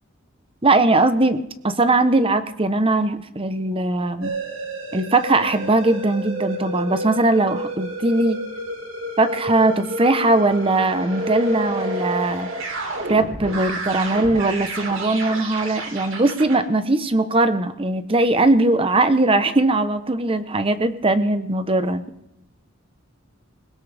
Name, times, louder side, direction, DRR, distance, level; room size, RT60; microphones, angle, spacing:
voice 1, 0.6-4.3 4.9-8.4 9.2-12.5 13.1-22.0, right 2 dB, 25° right, 11 dB, 1.0 m, -20 dB
sound 1, 4.2-16.6, right 1 dB, 70° right, 3.3 m, -30 dB
21.5 x 19.5 x 3.5 m, 0.85 s
head